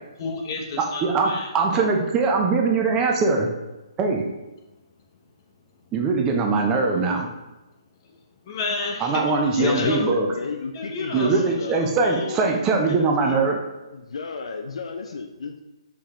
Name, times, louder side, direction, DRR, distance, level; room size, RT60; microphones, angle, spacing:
voice 1, 0.2-1.5 8.0-8.1 8.4-10.0 10.7-12.4, left 3 dB, 40° left, 1 dB, 0.7 m, -32 dB
voice 2, 0.8-3.5 4.0-4.2 5.9-7.3 9.0-10.3 11.1-13.6, right 4 dB, 20° right, 1 dB, 0.5 m, -22 dB
voice 3, 9.6-11.9 12.8-13.4 13.9-15.6, left 4 dB, 75° left, 5 dB, 0.4 m, -31 dB
4.6 x 3.6 x 3.0 m, 1.0 s
hypercardioid pair, 145°, 3 cm